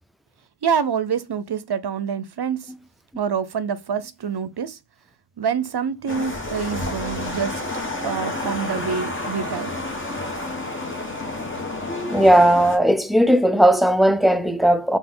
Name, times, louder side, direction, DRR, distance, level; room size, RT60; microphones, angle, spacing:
voice 1, 0.6-2.7 3.2-4.8 5.4-7.6 8.0-9.7, right 7 dB, 60° right, 0.6 m, -26 dB
sound 1, 6.1-12.8, left 2 dB, 25° left, 1.2 m, -29 dB
voice 2, 12.1-15.0, right 1 dB, ahead, 0.4 m, -16 dB
3.9 x 2.4 x 3.8 m
wide cardioid pair, 45°, 45 cm